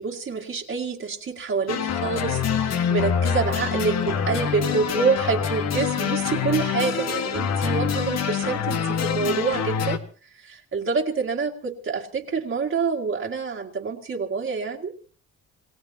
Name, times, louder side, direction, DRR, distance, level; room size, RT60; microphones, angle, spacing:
voice 1, 0.0-10.0 10.4-14.9, right 5 dB, 45° right, 0 dB, 2.1 m, -27 dB
sound 1, 1.7-10.0, left 7 dB, 60° left, 1.6 m, -25 dB
28.5 x 16.5 x 2.9 m, 0.38 s
cardioid pair, 90°, 30 cm